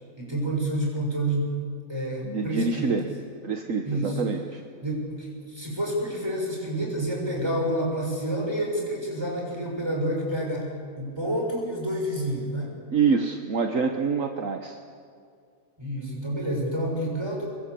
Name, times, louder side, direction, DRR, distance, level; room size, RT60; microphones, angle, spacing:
voice 1, 0.2-1.5 1.9-3.0 3.8-4.2 4.8-12.7 15.8-17.5, right 1 dB, 15° right, -1 dB, 6.7 m, -29 dB
voice 2, 2.2-3.1 3.4-4.6 12.9-14.8, right 5 dB, 60° right, 5 dB, 1.6 m, -26 dB
26.0 x 22.5 x 8.4 m, 2.2 s
omnidirectional pair, 1.6 m